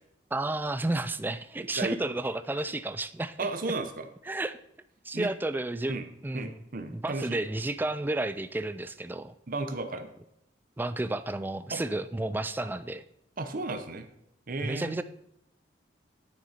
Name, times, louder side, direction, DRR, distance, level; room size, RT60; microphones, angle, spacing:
voice 1, 0.3-3.5 4.3-4.6 5.0-6.6 6.9-9.3 10.8-13.0 14.6-15.0, right 2 dB, 10° right, 12 dB, 0.3 m, -32 dB
voice 2, 3.4-4.1 5.1-5.3 5.9-6.1 6.3-7.4 9.5-10.1 11.7-11.8 13.4-14.1 14.5-15.0, right 3 dB, 50° right, 7 dB, 0.7 m, -33 dB
9.5 x 6.4 x 4.3 m, 0.80 s
head